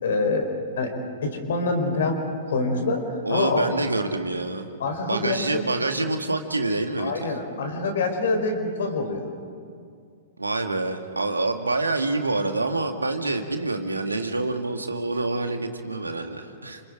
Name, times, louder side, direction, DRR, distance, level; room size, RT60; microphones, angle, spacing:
voice 1, 0.0-0.5 0.8-3.7 4.8-5.7 7.0-9.3, left 3 dB, 60° left, 4 dB, 4.6 m, -26 dB
voice 2, 3.3-4.7 5.1-7.4 10.4-16.8, right 2 dB, 85° right, 5 dB, 2.0 m, -27 dB
29.5 x 27.5 x 5.0 m, 2.3 s
figure-of-eight pair, 110°, 0 cm